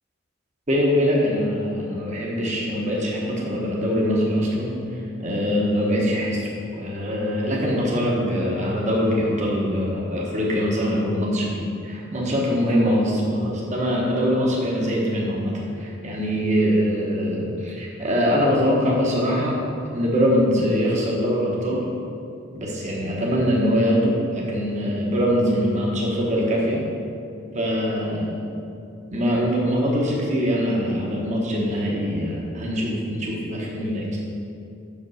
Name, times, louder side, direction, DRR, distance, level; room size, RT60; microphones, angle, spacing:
voice 1, 0.7-4.8 5.2-19.6 19.9-21.8 22.5-26.8 27.5-28.4 29.1-34.2, equal, 35° right, -3 dB, 1.2 m, -23 dB
6.1 x 5.3 x 6.2 m, 2.6 s
head